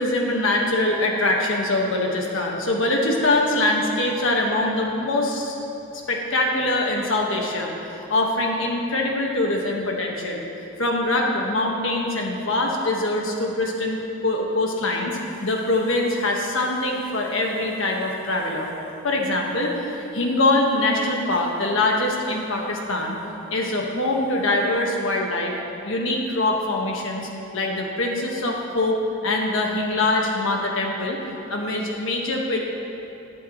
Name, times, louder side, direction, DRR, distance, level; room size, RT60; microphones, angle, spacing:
voice 1, 0.0-5.5 6.1-10.4 10.8-18.7 19.0-23.2 23.5-25.5 25.8-29.0 29.2-31.2 31.5-32.6, left 2 dB, 70° left, 0 dB, 1.5 m, -23 dB
20.5 x 7.1 x 3.1 m, 2.9 s
head